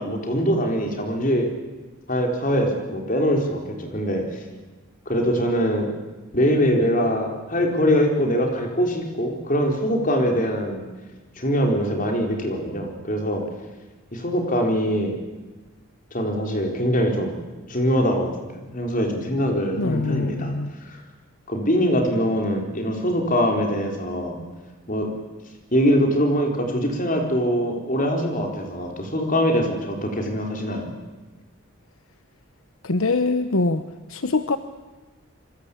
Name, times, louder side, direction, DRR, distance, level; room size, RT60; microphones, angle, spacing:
voice 1, 0.0-1.5 2.1-4.4 5.1-5.9 6.3-10.8 11.4-13.4 14.1-15.2 16.1-17.4 17.7-18.3 18.7-20.5 20.8-21.0 21.5-24.4 24.9-25.1 25.7-30.9, equal, 35° left, 3 dB, 4.3 m, -23 dB
voice 2, 19.8-20.7 32.8-33.8 34.1-34.6, left 3 dB, 75° left, 10 dB, 1.0 m, -23 dB
27.0 x 23.5 x 8.6 m, 1.2 s
head